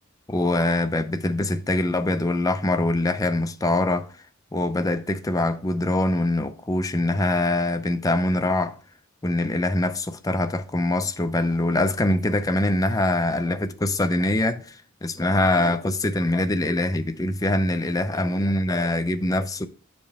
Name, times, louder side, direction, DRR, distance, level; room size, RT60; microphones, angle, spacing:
voice 1, 0.3-4.1 4.5-8.8 9.2-19.7, left 1 dB, 15° left, 0.5 m, -23 dB
8.2 x 5.1 x 3.4 m
head